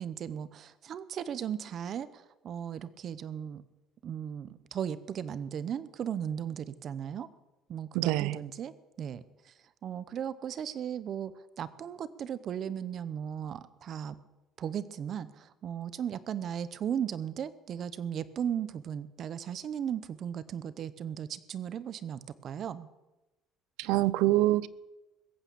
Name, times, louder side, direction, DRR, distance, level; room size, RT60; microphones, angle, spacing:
voice 1, 0.0-3.6 4.0-7.3 7.7-9.2 9.8-11.3 11.6-14.2 14.6-22.9, right 8 dB, 35° right, 0.7 m, -36 dB
voice 2, 7.9-8.4 23.8-24.7, right 16 dB, 85° right, 0.6 m, -25 dB
21.5 x 8.9 x 6.9 m
cardioid pair, 175°, 0 cm